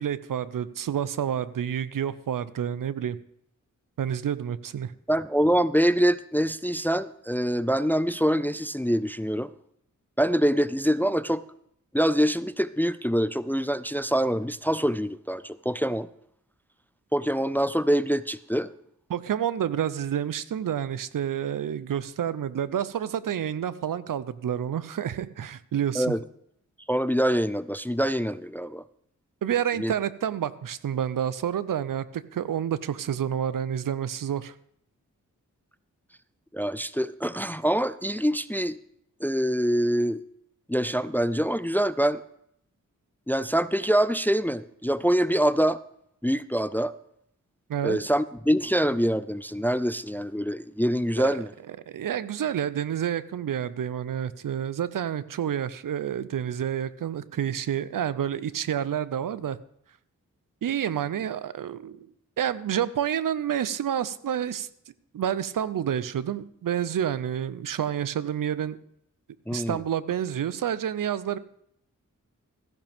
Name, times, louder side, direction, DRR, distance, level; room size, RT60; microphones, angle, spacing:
voice 1, 0.0-3.2 4.0-4.9 19.1-26.1 29.4-34.5 47.7-48.0 51.2-51.4 51.9-59.6 60.6-62.1 62.4-64.7 65.1-68.8 69.5-71.4, right 9 dB, 80° right, 16 dB, 0.6 m, -29 dB
voice 2, 5.1-9.5 10.2-11.4 11.9-16.1 17.1-18.7 26.0-26.2 26.9-28.8 29.8-29.9 36.5-38.8 39.2-40.2 40.7-42.2 43.3-45.8 46.2-46.9 47.8-51.5 69.5-69.8, equal, 5° left, 16 dB, 0.3 m, -25 dB
15.0 x 10.5 x 3.5 m, 0.73 s
wide cardioid pair, 65°, 32 cm